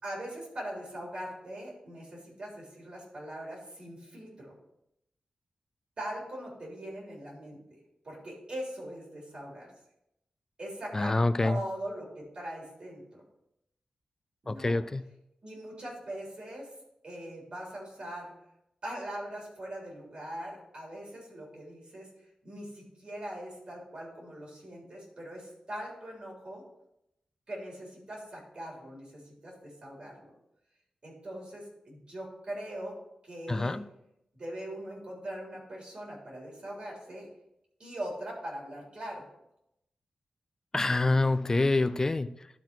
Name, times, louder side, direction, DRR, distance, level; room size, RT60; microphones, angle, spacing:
voice 1, 0.0-4.5 6.0-7.6 8.0-9.7 10.6-13.2 14.4-14.8 15.4-16.7 17.0-18.3 18.8-22.1 22.4-26.6 27.5-30.3 31.0-33.0 33.2-33.7 34.3-37.3 37.8-39.3, right 1 dB, 50° right, -2 dB, 3.5 m, -41 dB
voice 2, 10.9-11.6 14.5-15.1 33.5-33.8 40.7-42.3, left 2 dB, 25° left, 12 dB, 0.4 m, -26 dB
12.0 x 4.1 x 4.5 m, 0.82 s
wide cardioid pair, 110°, 2 cm